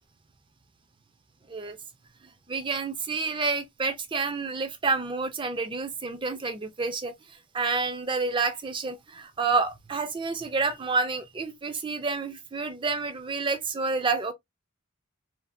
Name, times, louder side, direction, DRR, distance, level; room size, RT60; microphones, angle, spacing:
voice 1, 2.5-7.1 7.5-14.3, right 4 dB, 20° right, 0.4 m, -29 dB
2.6 x 2.4 x 2.5 m
head